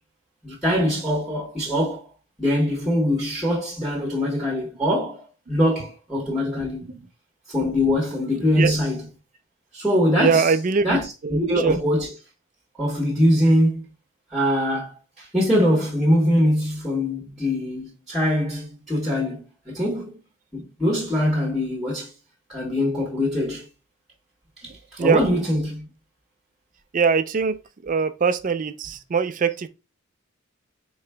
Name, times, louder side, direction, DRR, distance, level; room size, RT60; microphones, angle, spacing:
voice 1, 0.4-2.1 2.4-6.9 7.5-9.1 9.7-10.5 10.8-12.1 12.8-13.8 14.3-20.2 20.5-22.1 22.5-23.7 24.9-25.9, equal, ahead, 1.3 m, -23 dB
voice 2, 6.6-7.0 8.6-8.8 10.2-11.8 25.0-25.2 26.9-27.6 27.8-29.7, right 5 dB, 40° right, 0.4 m, -22 dB
5.0 x 3.9 x 2.2 m
head